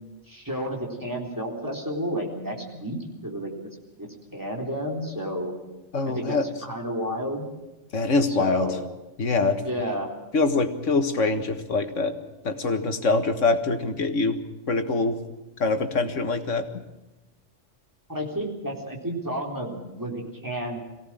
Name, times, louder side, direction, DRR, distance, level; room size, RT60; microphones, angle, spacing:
voice 1, 0.3-3.5 4.0-5.5 6.1-7.5 8.4-8.8 9.6-10.1 18.1-20.8, equal, 15° right, 0 dB, 3.9 m, -31 dB
voice 2, 5.9-6.5 7.9-8.8 9.2-9.6 10.3-12.2 12.4-14.4 14.7-15.2 15.6-16.8, left 3 dB, 85° left, 7 dB, 2.0 m, -24 dB
23.0 x 17.5 x 7.6 m, 1.1 s
omnidirectional pair, 1.3 m